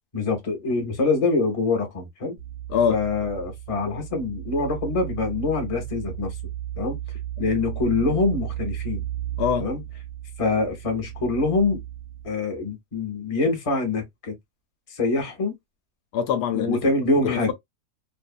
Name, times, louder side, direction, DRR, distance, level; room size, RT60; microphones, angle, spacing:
voice 1, 0.1-2.4 2.9-6.3 6.8-7.0 7.4-9.0 9.6-9.8 10.4-11.8 12.2-14.3 14.9-15.6 16.5-17.5, left 3 dB, 30° left, 0.7 m, -25 dB
sound 1, 2.4-12.3, right 13 dB, 50° right, 0.6 m, -34 dB
voice 2, 16.1-16.8 17.2-17.5, left 8 dB, 80° left, 1.2 m, -23 dB
2.7 x 2.4 x 2.2 m
omnidirectional pair, 1.7 m